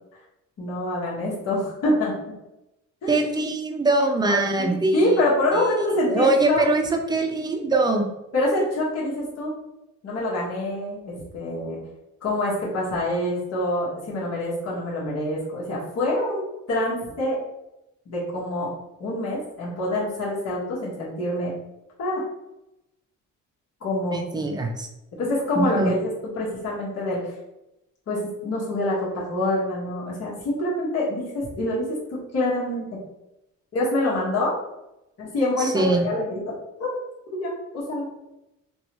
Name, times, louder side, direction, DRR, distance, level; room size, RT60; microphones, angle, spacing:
voice 1, 0.6-2.1 3.0-3.2 4.2-6.6 8.3-9.5 10.0-11.8 12.2-16.4 16.7-17.4 18.1-18.7 19.0-21.5 22.0-22.2 23.8-24.2 25.2-27.3 28.1-32.0 32.3-32.8 33.7-34.5 35.2-37.0 37.4-38.1, left 1 dB, 55° left, -6 dB, 1.4 m, -26 dB
voice 2, 3.1-5.2 5.5-5.6 6.1-8.0 24.1-24.9 25.6-25.9 35.6-36.1, right 2 dB, 15° right, 3 dB, 0.5 m, -22 dB
3.0 x 2.9 x 2.9 m, 0.92 s
cardioid pair, 90°, 30 cm